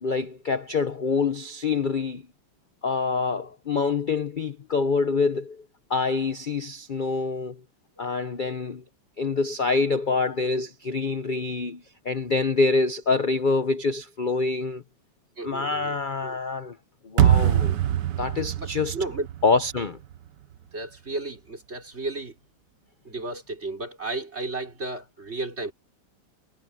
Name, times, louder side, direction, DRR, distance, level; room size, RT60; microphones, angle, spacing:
voice 1, 0.0-2.2 2.8-5.6 5.9-7.6 8.0-8.8 9.2-14.8 15.4-16.8 17.0-17.8 18.2-19.0 19.4-20.0, left 4 dB, 45° left, 0.6 m, -26 dB
voice 2, 15.4-15.9 16.2-16.4 18.4-19.3 20.7-22.4 23.0-25.7, right 2 dB, 35° right, 4.3 m, -33 dB
sound 1, 17.2-20.3, right 11 dB, 65° right, 1.4 m, -23 dB
omnidirectional pair, 2.1 m